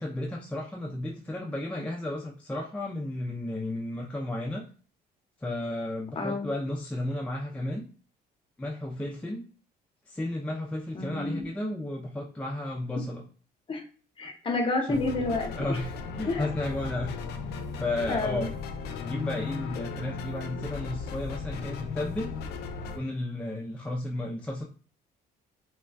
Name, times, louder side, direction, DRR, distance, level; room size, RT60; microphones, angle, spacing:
voice 1, 0.0-4.6 5.4-7.8 8.6-9.4 10.1-13.2 14.9-15.0 15.5-17.2 17.5-18.5 19.0-22.3 23.0-24.6, left 1 dB, 5° left, -2 dB, 0.4 m, -33 dB
voice 2, 6.2-6.5 10.9-11.5 13.7-13.8 14.2-15.5 16.3-16.5 18.1-18.5 19.1-19.3, left 2 dB, 30° left, 3 dB, 0.7 m, -29 dB
sound 1, 14.9-23.0, left 5 dB, 75° left, 0.5 m, -36 dB
3.3 x 2.2 x 2.2 m, 0.39 s
cardioid pair, 110°, 17 cm